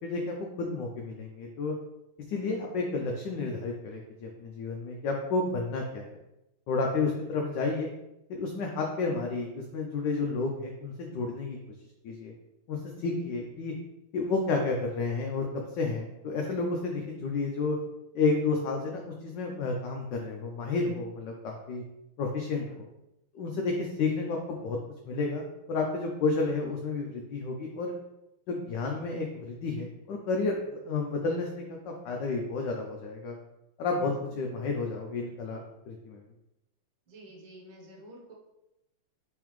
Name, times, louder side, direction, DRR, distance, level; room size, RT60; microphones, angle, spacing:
voice 1, 0.0-1.7 2.3-6.2 6.7-7.9 8.3-11.6 12.0-12.3 12.7-13.7 14.1-15.5 15.7-17.8 18.1-21.8 22.2-22.9 23.3-24.8 25.1-28.0 28.5-33.4 33.8-36.2, left 3 dB, 75° left, 1 dB, 1.1 m, -31 dB
voice 2, 34.0-34.6 37.1-38.3, right 1 dB, 65° right, -1 dB, 1.7 m, -51 dB
4.7 x 3.7 x 3.1 m, 0.92 s
omnidirectional pair, 2.4 m